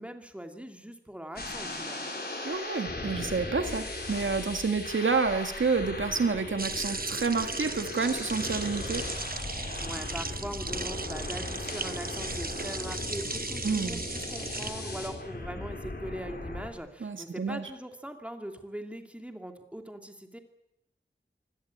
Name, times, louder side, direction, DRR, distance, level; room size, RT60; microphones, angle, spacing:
voice 1, 0.0-2.1 9.8-20.4, equal, 5° right, 5 dB, 2.7 m, -41 dB
sound 1, 1.4-16.7, left 2 dB, 55° left, 4.5 m, -38 dB
voice 2, 2.4-9.0 13.6-14.0 17.0-17.7, right 4 dB, 85° right, 7 dB, 1.8 m, -29 dB
sound 2, 6.6-14.7, right 3 dB, 50° right, 1.1 m, -37 dB
24.0 x 17.5 x 8.6 m, 0.83 s
wide cardioid pair, 65°, 20 cm